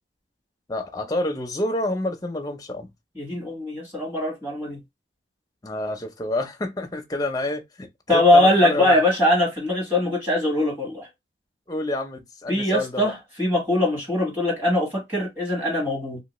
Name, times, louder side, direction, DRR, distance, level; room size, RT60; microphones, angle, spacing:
voice 1, 0.7-2.9 5.6-9.0 11.7-13.1, left 1 dB, 20° left, 0.5 m, -28 dB
voice 2, 3.2-4.8 8.1-11.1 12.5-16.2, left 1 dB, 10° right, 1.3 m, -21 dB
2.8 x 2.7 x 3.0 m
head